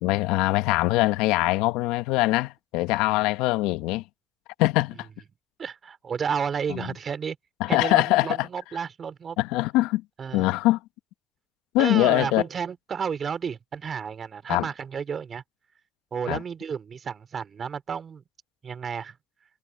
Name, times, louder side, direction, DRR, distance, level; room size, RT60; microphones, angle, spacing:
voice 1, 0.0-4.0 4.6-5.1 6.7-6.9 7.6-8.5 9.4-10.0 10.3-10.8 11.7-12.4 14.5-14.7 16.3-16.4, left 19 dB, 85° left, 1.1 m, -23 dB
voice 2, 5.6-7.4 7.7-9.4 10.2-10.5 11.8-15.4 16.1-18.2 18.6-19.2, right 6 dB, 50° right, 3.6 m, -32 dB
hypercardioid pair, 55°, 0 cm